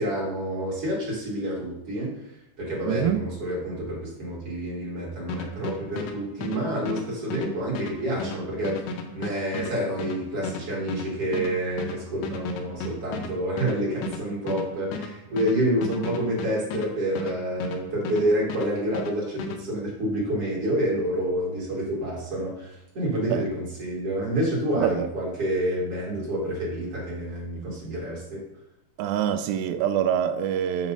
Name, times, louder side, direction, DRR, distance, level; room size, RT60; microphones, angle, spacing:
voice 1, 0.0-2.1 2.6-28.4, right 1 dB, 45° right, 2.5 m, -28 dB
voice 2, 2.9-3.2 23.3-23.4 24.8-25.1 29.0-30.9, right 9 dB, 80° right, 2.2 m, -25 dB
sound 1, 5.3-18.2 18.5-19.6, left 3 dB, 80° left, 2.4 m, -34 dB
8.2 x 3.0 x 5.3 m
omnidirectional pair, 4.2 m